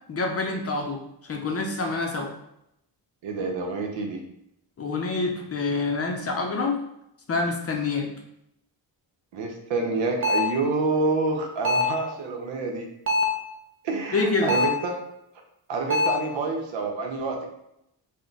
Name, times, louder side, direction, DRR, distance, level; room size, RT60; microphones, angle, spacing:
voice 1, 0.1-2.3 4.8-6.8 7.3-8.1 14.1-14.5, left 3 dB, 35° left, 2 dB, 0.5 m, -27 dB
voice 2, 3.2-4.2 9.3-12.9 13.8-15.0 15.7-17.4, right 3 dB, 80° right, 2 dB, 0.8 m, -27 dB
sound 1, 10.2-10.6 11.6-12.0 13.1-13.5 14.5-14.8 15.9-16.3, left 2 dB, 30° right, 0.5 m, -23 dB
3.4 x 2.2 x 3.9 m, 0.81 s
cardioid pair, 115°, 44 cm